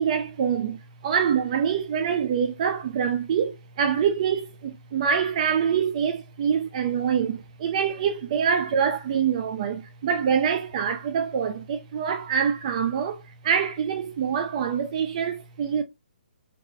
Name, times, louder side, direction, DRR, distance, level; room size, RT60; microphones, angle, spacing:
voice 1, 0.0-15.8, right 7 dB, 40° right, 0.4 m, -25 dB
3.0 x 2.9 x 2.4 m
hypercardioid pair, 145°, 5 cm